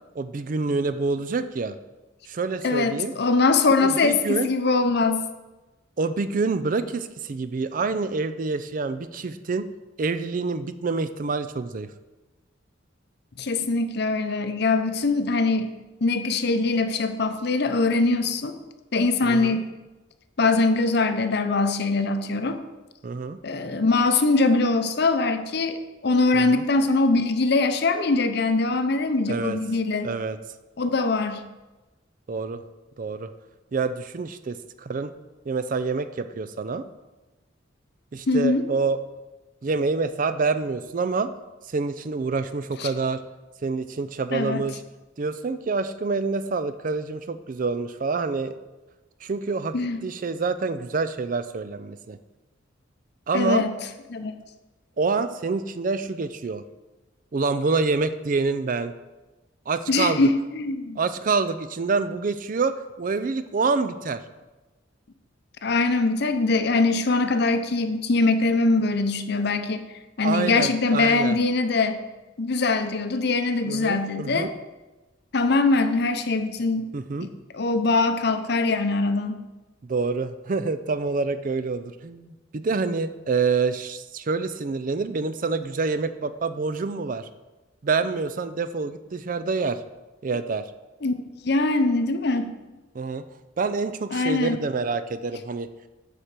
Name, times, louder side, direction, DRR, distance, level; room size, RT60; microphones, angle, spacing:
voice 1, 0.2-1.8 2.3-3.1 3.8-4.5 6.0-9.7 10.0-11.9 19.2-19.6 23.0-23.4 26.3-26.6 29.3-29.6 30.0-30.4 32.3-32.6 33.0-33.3 33.7-35.1 35.5-36.9 38.1-39.0 39.6-41.3 41.7-43.2 43.6-44.8 45.2-48.5 49.2-49.8 50.0-52.2 53.3-53.6 55.0-56.6 57.3-58.9 59.7-60.3 61.0-64.2 70.2-71.4 73.6-74.5 76.9-77.3 79.8-87.3 87.8-89.8 90.2-90.7 92.9-93.2 93.6-95.7, right 4 dB, 45° right, 12 dB, 0.4 m, -27 dB
voice 2, 2.6-5.2 13.4-15.7 16.0-18.6 18.9-19.6 20.4-22.6 23.4-30.1 30.8-31.4 38.3-38.6 42.8-42.9 44.3-44.6 49.7-50.0 53.3-53.7 54.1-54.4 59.9-61.0 65.6-69.8 70.2-72.0 72.4-74.5 75.3-76.9 77.2-77.3 77.5-79.4 91.0-92.5 94.1-94.6, left 3 dB, 55° left, 9 dB, 0.7 m, -22 dB
9.7 x 4.4 x 6.6 m, 1.1 s
head